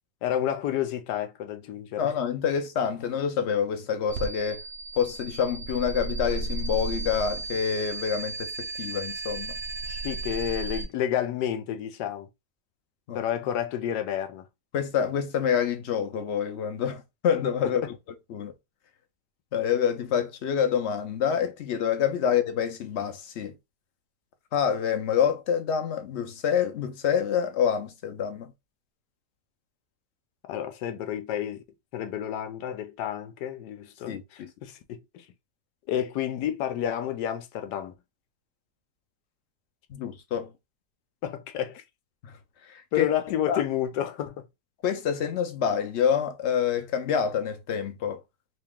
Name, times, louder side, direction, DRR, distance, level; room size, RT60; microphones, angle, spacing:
voice 1, 0.2-2.1 9.9-12.3 13.1-14.5 30.5-31.6 31.9-35.2 35.9-37.9 41.2-41.8 42.9-44.4, left 10 dB, 90° left, 1.2 m, -30 dB
voice 2, 2.0-4.6 5.0-9.5 13.1-13.2 14.7-18.0 18.3-18.5 19.5-23.5 24.5-28.5 34.1-34.5 39.9-40.5 42.2-42.3 42.7-43.1 43.5-43.6 44.8-48.2, left 8 dB, 60° left, 0.7 m, -27 dB
sound 1, 4.1-10.9, right 3 dB, 55° right, 0.7 m, -34 dB
3.1 x 2.8 x 3.5 m
omnidirectional pair, 1.8 m